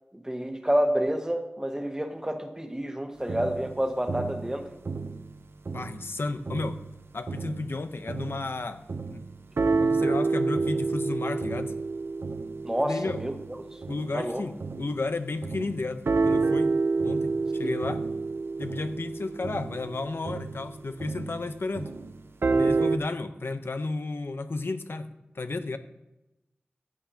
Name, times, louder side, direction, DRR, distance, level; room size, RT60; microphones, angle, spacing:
voice 1, 0.1-4.7 12.6-13.3 14.1-14.4 17.6-17.7, equal, 15° right, 4 dB, 1.4 m, -28 dB
sound 1, 3.3-6.2 6.5-15.1 15.4-23.0, right 4 dB, 75° right, 0.6 m, -29 dB
voice 2, 5.7-6.8 7.1-8.8 9.1-9.3 9.8-11.7 12.8-13.2 13.9-16.8 17.0-18.1 18.6-21.9 22.5-25.8, left 3 dB, 70° left, 9 dB, 0.8 m, -33 dB
14.5 x 9.4 x 2.9 m, 0.97 s
wide cardioid pair, 55°, 4 cm